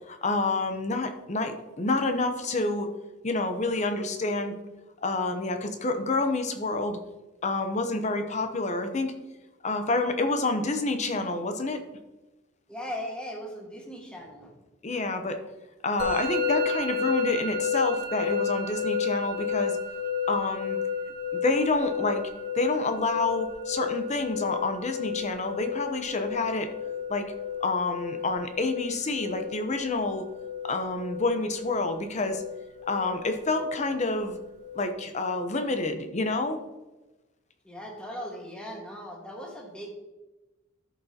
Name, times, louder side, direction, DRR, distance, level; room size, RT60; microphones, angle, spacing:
voice 1, 0.1-2.9 3.2-4.6 5.0-7.0 7.4-9.1 9.6-11.8 14.8-15.4 15.8-19.8 20.3-20.8 21.3-22.2 22.5-26.7 27.1-27.3 27.6-30.2 30.6-32.4 32.9-34.4 34.7-36.6, left 2 dB, 35° left, 7 dB, 0.7 m, -28 dB
voice 2, 12.7-14.5 37.6-39.9, equal, 5° left, -1 dB, 1.5 m, -38 dB
Musical instrument, 16.0-34.9, left 6 dB, 60° right, 1.5 m, -32 dB
13.0 x 5.6 x 2.8 m, 1.1 s
head